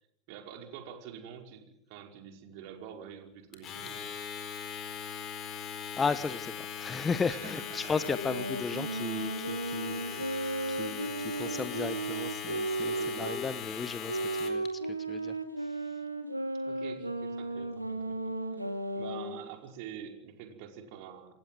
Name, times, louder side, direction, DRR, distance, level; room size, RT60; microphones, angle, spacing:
voice 1, 0.3-4.1 7.3-7.9 8.6-8.8 10.0-10.3 11.0-11.7 12.8-13.6 16.6-18.6 18.9-21.4, right 8 dB, 45° right, 4 dB, 5.2 m, -47 dB
Domestic sounds home sounds, 3.5-14.7, left 8 dB, 30° left, 4.4 m, -40 dB
voice 2, 6.0-10.0 10.3-11.1 11.4-16.0, left 5 dB, 15° left, 15 dB, 1.1 m, -35 dB
sound 1, 8.0-13.4 14.1-19.4, right 2 dB, 85° right, 2.6 m, -35 dB
27.5 x 16.5 x 9.2 m, 0.79 s
figure-of-eight pair, 90°, 0 cm